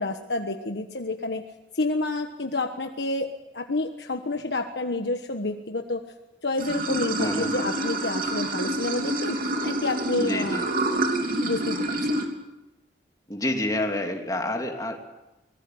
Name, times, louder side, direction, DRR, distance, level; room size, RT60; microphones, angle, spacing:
voice 1, 0.0-1.4 1.7-3.3 3.5-6.0 6.4-10.7 11.4-12.1, left 2 dB, 75° left, 5 dB, 1.4 m, -29 dB
Water / Sink (filling or washing), 6.6-12.3, right 1 dB, 55° right, 3.3 m, -27 dB
voice 2, 7.2-7.5 10.2-10.7 13.3-15.0, left 1 dB, 20° left, 2 dB, 3.1 m, -28 dB
24.0 x 20.0 x 7.9 m, 1.0 s
head